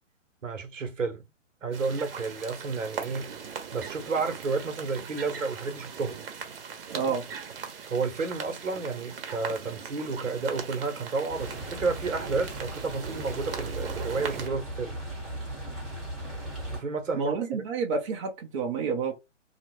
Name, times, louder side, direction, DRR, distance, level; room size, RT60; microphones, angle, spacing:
voice 1, 0.4-1.2 1.6-3.3 3.7-6.2 7.9-15.0 16.7-17.6, right 4 dB, 75° right, 1.0 m, -31 dB
sound 1, 1.7-14.5, right 6 dB, 50° right, 0.9 m, -39 dB
voice 2, 6.9-7.3 17.1-19.1, right 5 dB, 25° right, 0.6 m, -29 dB
sound 2, 11.3-16.8, right 1 dB, ahead, 1.1 m, -37 dB
2.8 x 2.2 x 2.9 m
figure-of-eight pair, 130°, 38 cm